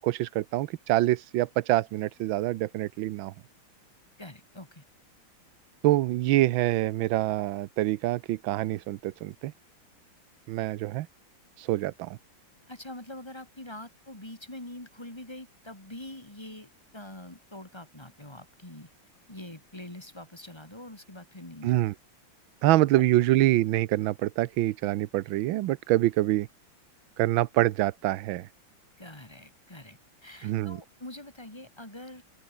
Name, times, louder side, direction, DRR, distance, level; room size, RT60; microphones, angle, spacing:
voice 1, 0.0-3.3 5.8-9.5 10.5-11.1 11.6-12.2 21.6-21.9 22.6-26.5 27.2-28.5 30.4-30.8, right 15 dB, 90° right, 1.5 m, -25 dB
voice 2, 4.2-4.8 12.7-18.9 19.3-21.9 22.6-23.0 29.0-32.2, left 1 dB, 15° left, 3.2 m, -44 dB
open air
omnidirectional pair, 2.1 m